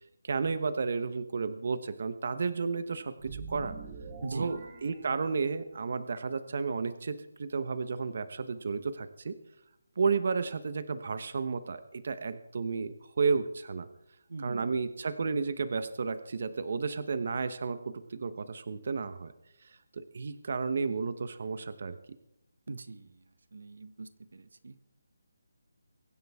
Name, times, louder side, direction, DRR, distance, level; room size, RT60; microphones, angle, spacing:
voice 1, 0.2-3.8 4.3-9.4 10.0-13.9 14.4-19.3 19.9-22.0, right 4 dB, 45° right, 12 dB, 1.0 m, -32 dB
sound 1, 3.2-5.8, right 4 dB, 25° right, 1.7 m, -45 dB
voice 2, 4.2-4.5 14.3-14.7 22.7-23.2 23.5-24.9, right 3 dB, 70° right, 12 dB, 1.0 m, -41 dB
23.5 x 11.0 x 3.6 m, 0.81 s
hypercardioid pair, 170°, 0 cm